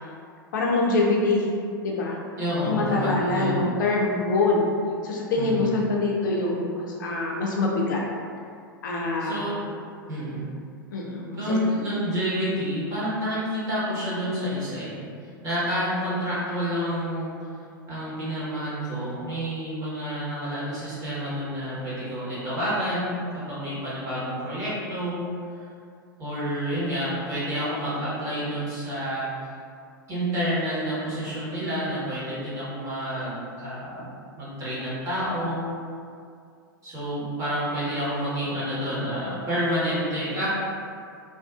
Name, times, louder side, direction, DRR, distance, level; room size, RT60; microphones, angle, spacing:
voice 1, 0.5-1.5 1.8-2.2 2.6-4.7 5.0-8.0 8.8-9.4 10.9-11.4, left 3 dB, 60° left, -2 dB, 0.4 m, -24 dB
voice 2, 2.4-3.7 5.4-5.8 9.2-9.6 10.1-10.4 11.4-15.0 15.4-17.3 17.9-25.2 26.2-29.3 30.1-35.6 36.8-40.5, equal, 25° right, -10 dB, 1.2 m, -29 dB
2.4 x 2.2 x 2.5 m, 2.3 s
figure-of-eight pair, 95°, 12 cm